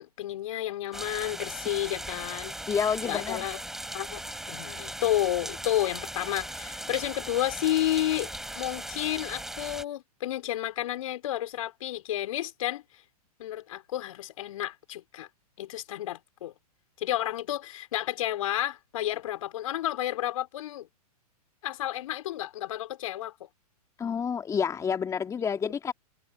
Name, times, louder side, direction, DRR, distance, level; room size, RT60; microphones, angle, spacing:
voice 1, 0.0-2.5 3.0-3.6 3.9-4.2 4.5-13.0 13.4-15.3 15.6-16.5 17.0-20.9 21.6-23.5, left 13 dB, 55° left, 3.8 m, -31 dB
sound 1, 0.9-9.8, right 1 dB, ahead, 4.6 m, -38 dB
voice 2, 2.7-3.5 24.0-25.9, left 7 dB, 15° left, 1.9 m, -29 dB
figure-of-eight pair, 110°, 20 cm